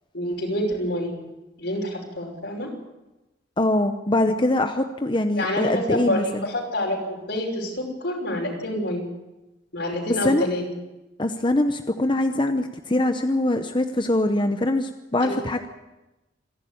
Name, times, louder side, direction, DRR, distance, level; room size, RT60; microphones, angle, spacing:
voice 1, 0.1-1.1 1.6-2.7 5.4-9.1 9.7-10.6 15.2-15.3, left 1 dB, 65° left, -2 dB, 6.0 m, -27 dB
voice 2, 3.6-6.5 10.1-10.5 11.2-15.7, left 1 dB, 25° left, 7 dB, 0.8 m, -23 dB
27.0 x 11.5 x 8.7 m, 1.0 s
head